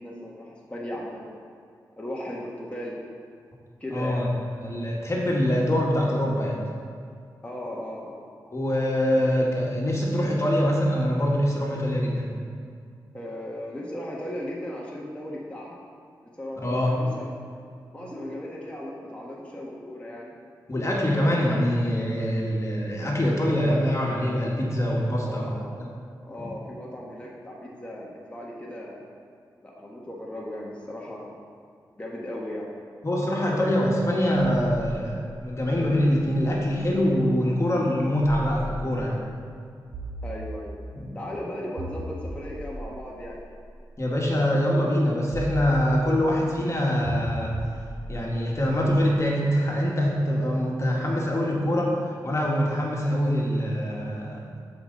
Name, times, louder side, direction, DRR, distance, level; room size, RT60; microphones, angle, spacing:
voice 1, 0.0-1.4 2.0-3.0 3.8-4.2 7.4-8.2 9.1-9.3 13.1-15.8 16.2-17.3 17.9-20.3 21.1-21.3 25.2-25.8 26.2-29.0 29.6-31.4 31.9-32.7 33.5-33.7 40.2-40.8 41.1-43.4, left 1 dB, 15° left, -4 dB, 1.6 m, -36 dB
voice 2, 3.9-4.3 4.6-6.6 8.5-12.3 16.6-17.0 20.7-25.5 26.4-26.5 33.0-39.2 41.0-41.1 44.0-47.6 48.1-54.5, equal, 40° left, -3 dB, 1.8 m, -24 dB
sound 1, 35.4-37.1 38.2-39.3 39.9-41.0 41.8-44.0 45.3-46.4 47.0-49.2, right 1 dB, 85° right, 1.4 m, -38 dB
12.0 x 5.1 x 4.1 m, 2.3 s
cardioid pair, 45°, 8 cm